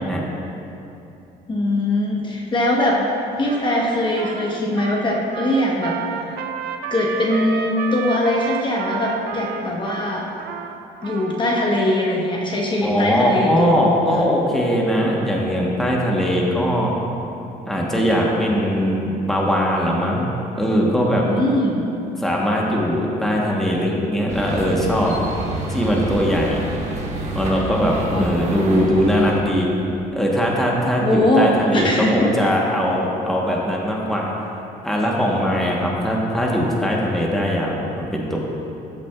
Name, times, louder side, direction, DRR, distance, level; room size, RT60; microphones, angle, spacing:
voice 1, 1.5-3.0 3.4-6.4 6.9-10.3 11.0-14.0 21.2-21.8 28.1-29.4 31.0-32.3, left 1 dB, 30° left, -2 dB, 1.0 m, -21 dB
Trumpet, 3.4-11.7, right 7 dB, 70° right, 0.5 m, -31 dB
voice 2, 12.8-17.0 17.7-20.3 20.5-21.3 22.2-25.1 25.7-26.6 27.3-29.7 30.1-34.3 34.8-38.4, equal, ahead, -3 dB, 1.0 m, -20 dB
sound 1, 24.3-29.3, right 2 dB, 45° right, 1.3 m, -28 dB
13.5 x 5.8 x 2.3 m, 2.8 s
cardioid pair, 110°, 17 cm